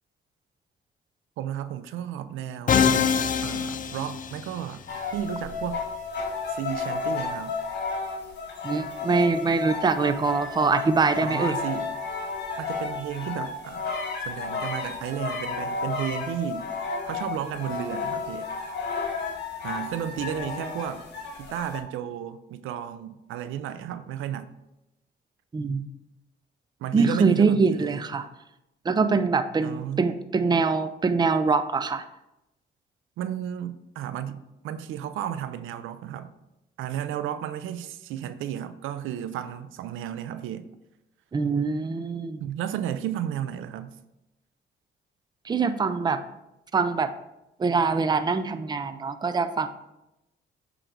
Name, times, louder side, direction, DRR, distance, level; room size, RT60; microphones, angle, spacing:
voice 1, 1.4-2.9 3.4-4.8 5.1-5.8 6.5-7.5 11.2-11.9 12.6-13.9 14.2-16.7 17.1-18.5 19.6-21.0 21.4-24.5 26.8-28.0 29.6-30.1 33.2-36.3 36.8-40.6 42.4-44.0, right 10 dB, 85° right, 12 dB, 0.5 m, -33 dB
Musical instrument, 2.7-4.8, left 7 dB, 40° left, 0.5 m, -24 dB
sound 1, 4.9-21.8, left 4 dB, 60° left, 1.9 m, -32 dB
voice 2, 8.6-11.6 25.5-25.8 26.9-28.2 28.9-32.0 41.3-42.4 45.5-46.2 46.7-47.1 47.6-49.7, right 4 dB, 20° right, 11 dB, 0.5 m, -24 dB
8.0 x 3.8 x 4.5 m, 0.93 s
cardioid pair, 90°, 20 cm